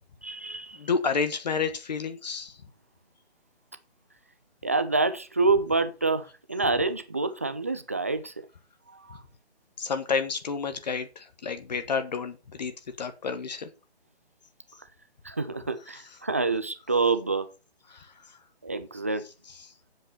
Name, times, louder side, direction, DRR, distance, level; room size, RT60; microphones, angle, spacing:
voice 1, 0.2-0.8 4.6-8.5 8.9-9.2 15.2-17.5 18.6-19.3, right 3 dB, 15° right, 0.5 m, -27 dB
voice 2, 0.7-2.6 9.8-13.7 17.9-18.4 19.6-19.7, left 5 dB, 40° left, 1.4 m, -30 dB
8.1 x 7.7 x 6.6 m
figure-of-eight pair, 145°, 32 cm